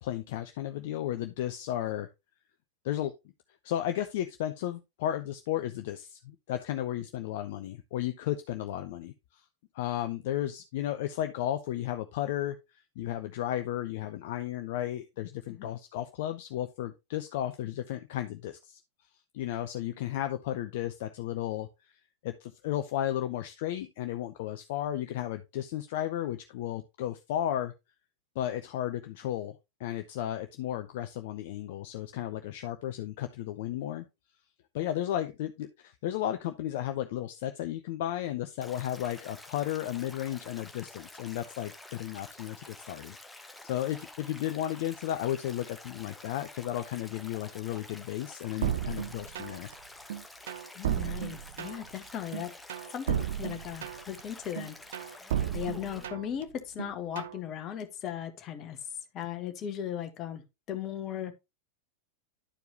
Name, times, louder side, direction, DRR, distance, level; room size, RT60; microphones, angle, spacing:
voice 1, 0.0-2.1 2.8-3.1 3.6-9.4 9.7-12.6 13.0-18.8 19.3-21.7 22.2-27.7 28.4-34.0 34.7-49.7, left 12 dB, 50° left, 0.6 m, -34 dB
Stream, 38.6-56.0, left 2 dB, 5° left, 1.0 m, -49 dB
sound 1, 48.6-49.7 50.1-52.0 52.3-54.2 54.6-56.4 56.8-57.4, right 10 dB, 60° right, 0.6 m, -33 dB
voice 2, 50.7-52.5 52.9-55.3 55.5-58.8 59.1-60.4 60.7-61.3, left 10 dB, 35° left, 1.4 m, -37 dB
11.5 x 4.6 x 3.0 m
figure-of-eight pair, 90°, 0 cm